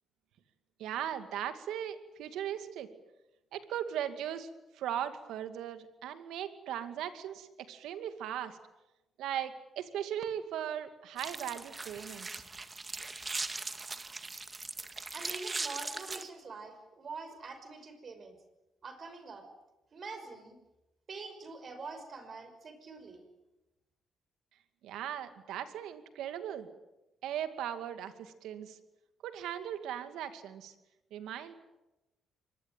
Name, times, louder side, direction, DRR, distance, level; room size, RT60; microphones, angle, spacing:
voice 1, 0.8-2.9 3.5-4.5 4.7-8.6 9.2-12.4 24.8-26.7 27.2-28.8 29.2-30.7 31.1-31.5, right 10 dB, 85° right, 9 dB, 2.3 m, -38 dB
sound 1, 11.2-16.2, right 3 dB, 25° right, 1.9 m, -40 dB
voice 2, 15.1-18.4 18.8-19.4 19.9-20.6 21.1-23.2, right 4 dB, 45° right, 8 dB, 5.9 m, -45 dB
24.5 x 20.5 x 9.2 m, 0.99 s
cardioid pair, 90°, 0 cm